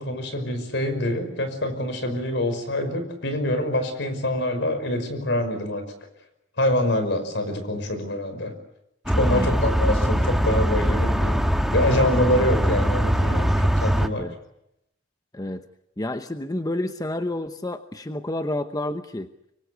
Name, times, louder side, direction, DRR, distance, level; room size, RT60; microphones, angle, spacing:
voice 1, 0.0-5.8 6.6-8.5 9.2-11.4 11.7-14.3, left 1 dB, 70° left, 9 dB, 5.5 m, -25 dB
sound 1, 9.1-14.1, equal, ahead, 1.4 m, -22 dB
voice 2, 9.3-9.6 14.1-14.3 15.3-15.6 16.0-19.3, left 1 dB, 20° left, 8 dB, 0.9 m, -29 dB
25.0 x 24.0 x 8.3 m, 0.82 s
head